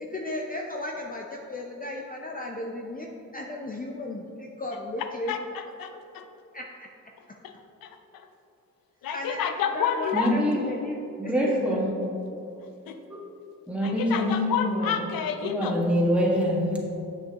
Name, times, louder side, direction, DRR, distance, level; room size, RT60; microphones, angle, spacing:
voice 1, 0.0-5.3 6.5-6.9 9.1-11.8, left 2 dB, 25° left, 0 dB, 0.6 m, -35 dB
voice 2, 5.3-6.2 7.4-7.5 7.8-7.9 9.0-10.3 12.9-13.0 13.8-15.8, left 7 dB, 85° left, 7 dB, 0.6 m, -29 dB
voice 3, 10.1-10.6 11.2-11.9 13.1-13.2 13.7-14.9 15.4-16.8, equal, 5° right, -3 dB, 1.6 m, -25 dB
7.4 x 6.6 x 2.9 m, 2.7 s
cardioid pair, 65°, 34 cm